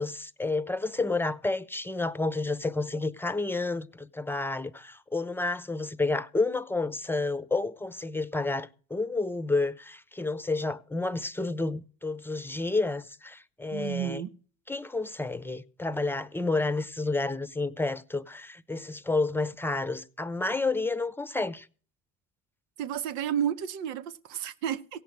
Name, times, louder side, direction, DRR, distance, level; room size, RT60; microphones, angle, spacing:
voice 1, 0.0-14.2 14.7-21.7, left 3 dB, 5° left, 0.8 m, -30 dB
voice 2, 13.7-14.3 22.8-25.0, right 9 dB, 80° right, 1.1 m, -31 dB
17.0 x 6.6 x 7.3 m
supercardioid pair, 95°, 29 cm